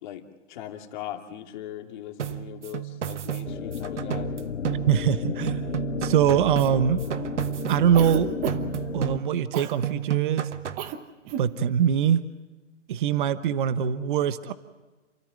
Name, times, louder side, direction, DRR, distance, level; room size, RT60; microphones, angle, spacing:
voice 1, 0.0-4.3, left 11 dB, 40° left, 5 dB, 2.5 m, -39 dB
sound 1, 2.2-5.2 5.5-8.2 8.5-9.5 9.8-10.9, right 10 dB, 70° right, 1.3 m, -32 dB
sound 2, 3.4-9.2, left 8 dB, 80° left, 0.8 m, -33 dB
voice 2, 4.9-5.6 6.0-7.0 7.7-8.4 8.9-10.5 11.4-12.2 12.9-14.5, right 9 dB, 40° right, 14 dB, 1.1 m, -23 dB
Cough, 7.9-8.8 9.5-9.8 10.8-11.0 11.2-11.5, right 10 dB, 20° right, 1.2 m, -31 dB
29.0 x 13.5 x 9.2 m, 1.2 s
hypercardioid pair, 140°, 37 cm